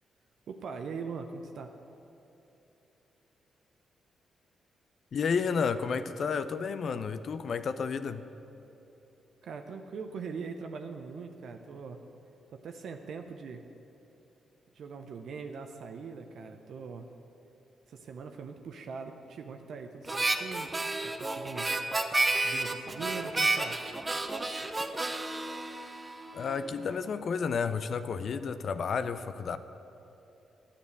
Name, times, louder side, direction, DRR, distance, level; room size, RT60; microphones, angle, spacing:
voice 1, 0.5-1.7 9.4-12.0 12.5-13.6 14.7-17.1 17.9-20.7 21.0-21.7 22.4-23.8, right 5 dB, 65° right, 5 dB, 0.7 m, -41 dB
voice 2, 5.1-8.3 26.3-29.6, left 5 dB, 60° left, 11 dB, 0.5 m, -31 dB
Harmonica, 20.1-26.6, right 2 dB, 25° right, 0.9 m, -31 dB
10.5 x 7.0 x 8.2 m, 3.0 s
hypercardioid pair, 45°, 0 cm